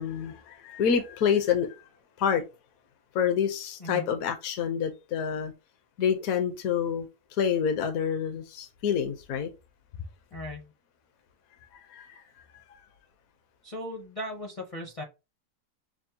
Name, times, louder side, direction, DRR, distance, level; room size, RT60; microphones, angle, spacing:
voice 1, 0.0-1.8 2.2-2.4 3.1-5.5 6.0-7.1 7.4-9.5 11.9-12.2, left 7 dB, 70° left, 1.1 m, -27 dB
voice 2, 10.3-10.6 13.6-15.0, left 1 dB, 40° left, 0.5 m, -37 dB
6.0 x 2.0 x 2.7 m
omnidirectional pair, 1.6 m